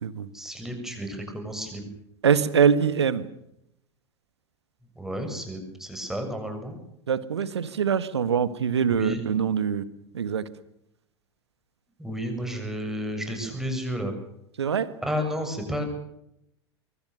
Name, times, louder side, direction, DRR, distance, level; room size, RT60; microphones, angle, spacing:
voice 1, 0.3-1.9 5.0-6.8 8.8-9.2 12.0-14.1 15.0-15.8, equal, 5° right, 4 dB, 7.2 m, -32 dB
voice 2, 2.2-3.2 7.1-9.8 10.1-10.4 14.6-14.9, right 7 dB, 70° right, 15 dB, 1.5 m, -23 dB
24.5 x 24.5 x 6.8 m, 0.79 s
figure-of-eight pair, 80°, 14 cm